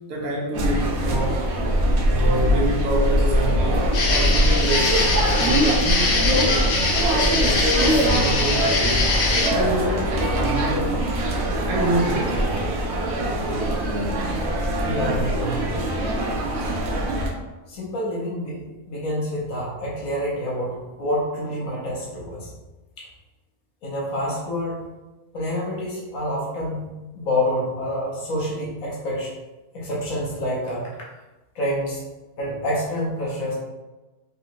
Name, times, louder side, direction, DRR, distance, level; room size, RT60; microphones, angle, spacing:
voice 1, 0.1-1.4 2.1-7.0 7.4-9.1 9.5-11.0 11.7-12.6, right 1 dB, 80° right, -2 dB, 1.2 m, -27 dB
sound 1, 0.5-17.3, equal, 60° right, 0.8 m, -22 dB
sound 2, 3.9-9.5, left 3 dB, 55° left, 0.6 m, -23 dB
voice 2, 14.8-15.8 17.7-18.6 18.9-22.5 23.0-23.1 23.8-24.8 25.3-26.9 27.1-29.3 29.7-30.9 31.5-32.1 32.4-33.5, equal, 70° left, -4 dB, 1.2 m, -27 dB
3.6 x 2.9 x 2.5 m, 1.1 s
omnidirectional pair, 1.5 m